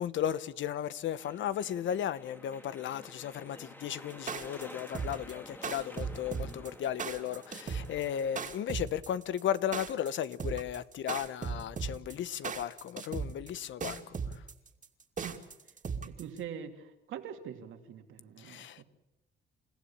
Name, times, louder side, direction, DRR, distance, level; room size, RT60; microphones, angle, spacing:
voice 1, 0.0-14.2 18.4-18.8, left 10 dB, 75° left, 1.1 m, -35 dB
sound 1, 1.2-8.5, left 1 dB, 10° left, 2.3 m, -51 dB
sound 2, 4.1-16.4, right 5 dB, 40° right, 2.5 m, -37 dB
voice 2, 16.1-18.8, right 8 dB, 80° right, 2.7 m, -44 dB
29.0 x 15.5 x 8.6 m
cardioid pair, 90°, 20 cm